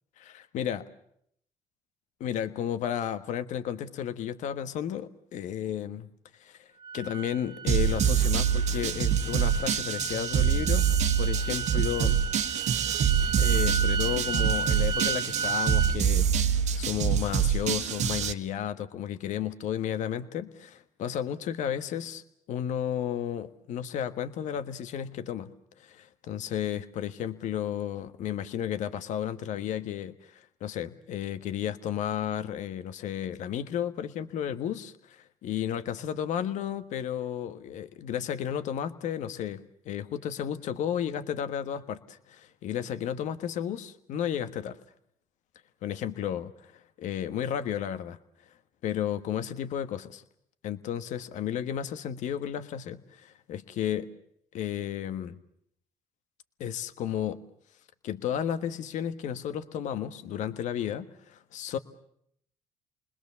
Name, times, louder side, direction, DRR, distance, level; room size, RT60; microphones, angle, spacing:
voice 1, 0.2-0.8 2.2-6.1 6.4-6.6 6.9-10.9 11.2-12.2 13.4-22.2 22.5-25.5 25.8-44.8 45.8-48.2 48.8-50.2 50.6-54.1 54.5-55.4 56.6-57.4 58.0-61.8, left 9 dB, 70° left, 10 dB, 1.5 m, -33 dB
sound 1, 6.8-16.0, right 6 dB, 35° right, 1.2 m, -34 dB
sound 2, 7.7-18.3, right 8 dB, 65° right, 1.4 m, -25 dB
29.5 x 21.0 x 7.1 m, 0.70 s
supercardioid pair, 80°, 13 cm